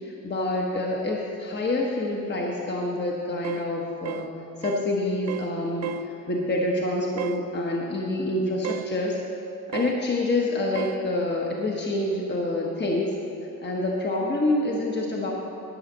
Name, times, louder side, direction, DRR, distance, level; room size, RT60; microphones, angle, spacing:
voice 1, 0.0-4.3 4.6-9.2 9.7-13.1 13.6-15.3, left 2 dB, 35° left, -2 dB, 1.2 m, -27 dB
sound 1, 3.4-3.7 4.1-4.3 4.6-4.9 5.3-5.5 5.8-6.1 7.2-7.4 8.6-8.9 9.7-10.0 10.7-11.0, right 11 dB, 55° right, 0.4 m, -33 dB
11.0 x 6.4 x 7.3 m, 2.7 s
wide cardioid pair, 130°, 32 cm